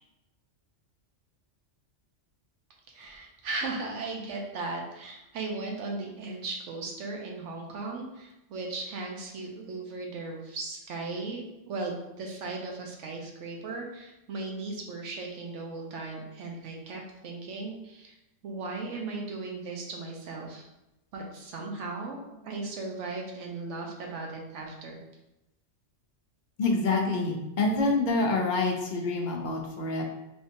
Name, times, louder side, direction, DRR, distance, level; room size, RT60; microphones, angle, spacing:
voice 1, 2.9-18.1 18.4-20.6 21.1-25.0, right 3 dB, 85° right, 0 dB, 1.0 m, -37 dB
voice 2, 26.6-30.0, left 3 dB, 50° left, 0 dB, 0.6 m, -27 dB
3.5 x 2.6 x 2.6 m, 0.93 s
omnidirectional pair, 1.2 m